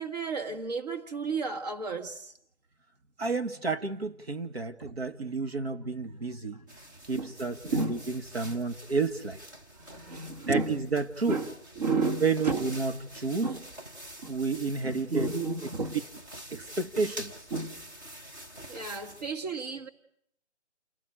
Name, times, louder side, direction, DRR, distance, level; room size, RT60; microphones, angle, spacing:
voice 1, 0.0-2.3 4.8-5.0 7.1-7.3 7.6-8.6 9.8-10.9 11.3-12.7 13.4-13.7 14.2-14.4 14.8-16.0 16.5-16.7 17.5-17.9 18.7-19.9, right 4 dB, 35° right, 1.8 m, -33 dB
voice 2, 3.2-6.6 7.1-9.4 10.5-11.4 12.2-13.5 14.3-15.3 16.5-17.3, right 4 dB, 60° right, 1.9 m, -30 dB
sound 1, 6.7-19.3, right 1 dB, 20° right, 1.2 m, -47 dB
29.5 x 18.0 x 9.0 m
figure-of-eight pair, 150°, 34 cm